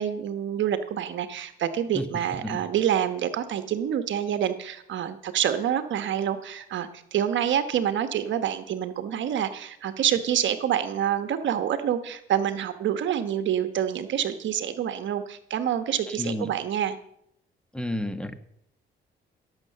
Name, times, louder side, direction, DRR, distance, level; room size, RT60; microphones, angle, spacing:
voice 1, 0.0-17.0, right 9 dB, 70° right, 10 dB, 1.1 m, -27 dB
voice 2, 16.1-16.5 17.7-18.3, left 1 dB, 5° left, 10 dB, 1.4 m, -31 dB
17.0 x 7.4 x 6.7 m, 0.74 s
cardioid pair, 90°, 20 cm